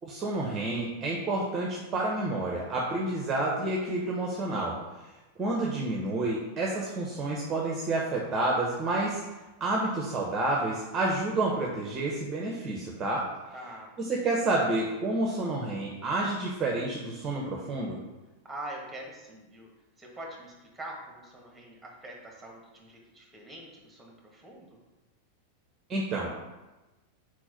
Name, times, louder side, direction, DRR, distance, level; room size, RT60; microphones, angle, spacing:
voice 1, 0.0-4.7 5.0-5.1 5.4-9.3 9.6-13.3 14.0-18.0 25.9-26.4, right 2 dB, 25° right, -2 dB, 1.0 m, -29 dB
voice 2, 13.5-13.9 18.4-19.7 20.0-24.8, right 1 dB, 5° right, -1 dB, 2.2 m, -44 dB
4.7 x 4.5 x 5.8 m, 1.1 s
figure-of-eight pair, 90°, 0 cm